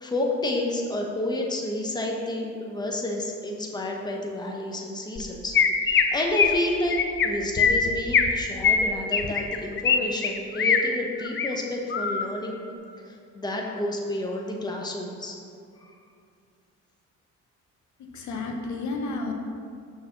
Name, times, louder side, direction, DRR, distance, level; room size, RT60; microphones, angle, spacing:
voice 1, 0.0-12.6 13.0-15.4 15.8-16.0, left 1 dB, 15° left, 0 dB, 1.0 m, -30 dB
Chirp tweet, 5.2-5.3 5.5-6.0 6.4-6.6 6.9-7.3 7.6-8.3 8.6-10.0 10.2-10.8 11.2-11.5 11.9-12.3, left 6 dB, 40° left, 0.6 m, -21 dB
voice 2, 18.0-19.3, left 3 dB, 70° left, 2 dB, 0.9 m, -31 dB
6.3 x 4.2 x 5.9 m, 2.4 s
cardioid pair, 90°, 30 cm